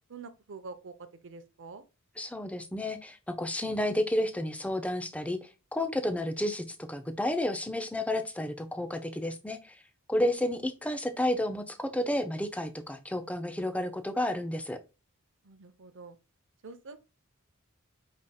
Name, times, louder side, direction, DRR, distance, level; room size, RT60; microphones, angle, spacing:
voice 1, 0.1-1.8 15.4-16.2 16.6-17.0, right 4 dB, 60° right, 0.7 m, -46 dB
voice 2, 2.2-9.7 10.1-14.8, left 1 dB, 5° left, 0.6 m, -31 dB
4.9 x 4.2 x 2.3 m
head